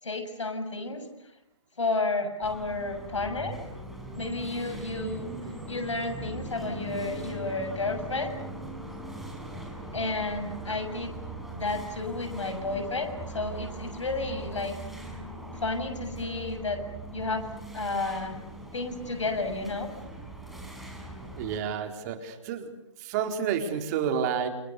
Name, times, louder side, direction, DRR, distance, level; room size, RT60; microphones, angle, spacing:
voice 1, 0.0-1.0 1.8-3.6 4.1-5.3 5.7-8.3 9.9-11.1 11.5-14.7 15.6-16.8 17.1-17.5 17.7-18.4 18.7-19.9, left 3 dB, 75° left, 7 dB, 7.1 m, -31 dB
sound 1, 2.4-21.6, right 2 dB, ahead, 5.6 m, -40 dB
voice 2, 21.4-22.7 23.0-24.5, right 7 dB, 35° right, 5 dB, 4.2 m, -29 dB
30.0 x 29.5 x 6.8 m, 0.84 s
figure-of-eight pair, 130°, 16 cm